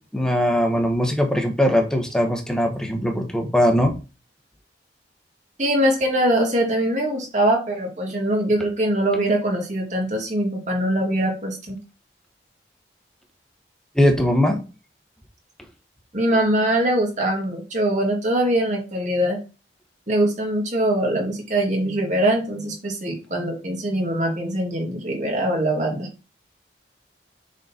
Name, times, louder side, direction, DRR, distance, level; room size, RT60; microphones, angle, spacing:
voice 1, 0.1-3.9 13.9-14.6, equal, 5° left, 4 dB, 1.1 m, -20 dB
voice 2, 5.6-11.8 16.1-19.4 20.1-26.1, right 1 dB, 45° right, 0 dB, 2.2 m, -22 dB
6.3 x 3.9 x 4.3 m, 0.32 s
head